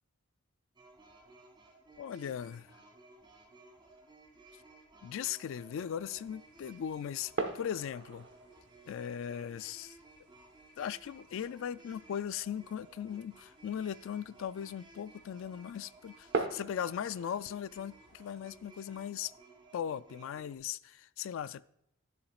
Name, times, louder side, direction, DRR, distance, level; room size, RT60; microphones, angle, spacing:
sound 1, 0.8-20.6, right 2 dB, 25° right, 1.9 m, -58 dB
voice 1, 2.0-2.8 5.0-8.3 8.9-10.0 10.8-19.3 19.7-21.6, left 9 dB, 65° left, 0.3 m, -38 dB
sound 2, 5.7-18.7, right 3 dB, 55° right, 1.1 m, -44 dB
11.5 x 7.1 x 2.4 m
head